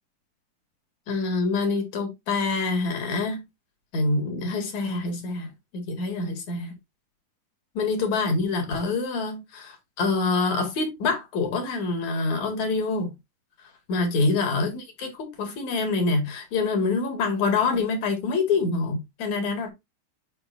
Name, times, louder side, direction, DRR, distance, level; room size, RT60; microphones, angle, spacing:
voice 1, 1.1-3.4 3.9-6.7 7.7-13.1 13.9-19.7, left 3 dB, 60° left, 3.1 m, -26 dB
8.9 x 5.3 x 2.6 m
omnidirectional pair, 3.7 m